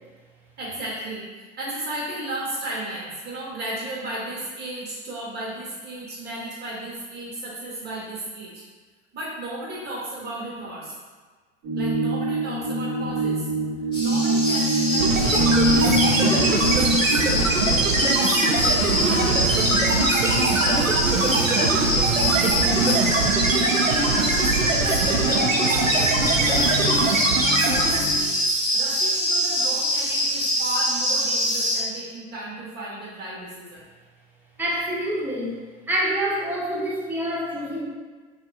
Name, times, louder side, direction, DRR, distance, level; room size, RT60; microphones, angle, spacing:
voice 1, 0.6-8.6 9.1-11.0 11.8-13.5 14.0-17.6 18.1-23.1 23.9-26.8 27.4-28.3 28.7-33.8, right 1 dB, 25° right, -5 dB, 1.2 m, -34 dB
sound 1, 11.6-28.3, right 1 dB, 45° right, 1.2 m, -27 dB
sound 2, 13.9-31.8, equal, 10° left, 1.4 m, -24 dB
sound 3, 15.0-28.2, right 3 dB, 85° right, 0.5 m, -22 dB
voice 2, 34.6-35.6 35.9-37.8, equal, 5° right, -4 dB, 0.4 m, -26 dB
5.7 x 2.3 x 2.4 m, 1.4 s
figure-of-eight pair, 85°, 39 cm